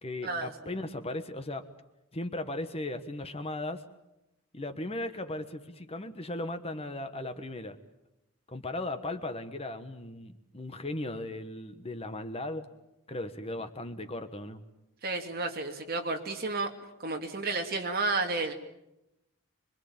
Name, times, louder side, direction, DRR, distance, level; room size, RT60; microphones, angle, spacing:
voice 1, 0.0-1.6 2.1-3.8 4.5-7.8 8.5-12.7 13.1-14.6, left 2 dB, 25° left, 8 dB, 1.3 m, -37 dB
voice 2, 15.0-16.7 17.0-18.5, right 3 dB, 45° right, 3 dB, 2.7 m, -31 dB
25.5 x 23.0 x 8.8 m, 0.89 s
head